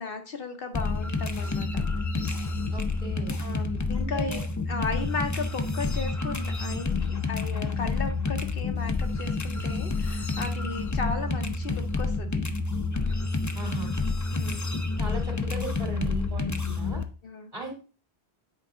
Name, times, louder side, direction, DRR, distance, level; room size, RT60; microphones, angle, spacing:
voice 1, 0.0-1.8 3.4-4.4 4.7-12.4 14.3-14.8 17.2-17.5, left 4 dB, 60° left, 5 dB, 0.9 m, -35 dB
sound 1, 0.7-17.0, left 3 dB, 25° left, 0.4 m, -29 dB
voice 2, 2.7-3.4 3.9-4.4 13.5-13.9 15.0-17.0 17.5-17.8, right 3 dB, 35° right, 2 dB, 2.3 m, -37 dB
8.3 x 4.7 x 3.7 m, 0.35 s
omnidirectional pair, 1.1 m